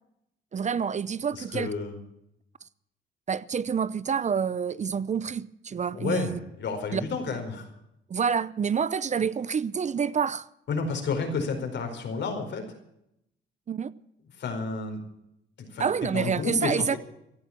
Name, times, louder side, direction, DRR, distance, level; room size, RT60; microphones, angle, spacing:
voice 1, 0.5-1.7 3.3-6.4 6.9-7.0 8.1-10.5 13.7-13.9 15.8-17.0, right 6 dB, 35° right, 0.6 m, -28 dB
voice 2, 1.3-2.0 5.9-7.7 10.7-12.6 14.4-15.0 15.6-17.0, left 4 dB, 65° left, 4.8 m, -31 dB
16.0 x 12.0 x 7.4 m
cardioid pair, 90°, 20 cm